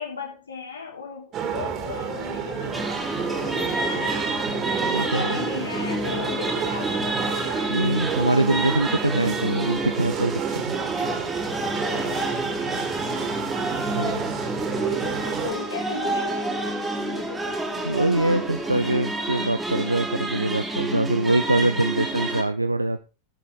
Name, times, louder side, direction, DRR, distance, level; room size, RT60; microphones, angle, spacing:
voice 1, 0.0-4.6 4.9-7.8 11.8-12.5 13.9-14.3 14.8-16.6 17.0-18.2, left 6 dB, 75° left, 0 dB, 3.6 m, -36 dB
sound 1, 1.3-15.5, right 7 dB, 30° right, 2.6 m, -31 dB
sound 2, 2.6-5.9 7.3-7.6 8.8-9.3 9.7-9.8 11.5-20.0, left 2 dB, 20° left, 3.8 m, -44 dB
sound 3, 2.7-22.4, right 2 dB, 5° right, 2.6 m, -29 dB
voice 2, 4.9-5.4 7.7-10.8 13.9-14.2 17.8-23.0, right 1 dB, 85° right, 9 dB, 0.5 m, -24 dB
18.5 x 6.8 x 3.7 m, 0.32 s
figure-of-eight pair, 90°, 0 cm